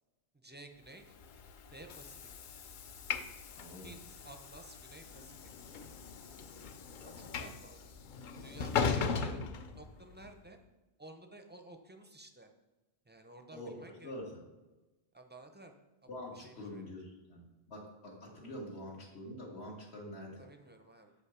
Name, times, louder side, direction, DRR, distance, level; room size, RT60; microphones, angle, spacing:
voice 1, 0.3-1.2 1.7-2.2 3.7-5.5 7.0-7.9 8.4-10.6 11.0-12.5 13.1-14.1 15.1-15.7 16.3-16.9 20.4-21.1, right 2 dB, 15° right, 5 dB, 0.3 m, -54 dB
Train / Sliding door, 1.0-10.3, left 5 dB, 60° left, 0.6 m, -39 dB
voice 2, 3.5-3.9 13.5-14.3 16.1-17.4 17.7-20.4, left 1 dB, 85° left, -2 dB, 1.9 m, -45 dB
6.6 x 5.5 x 4.9 m, 1.1 s
omnidirectional pair, 1.1 m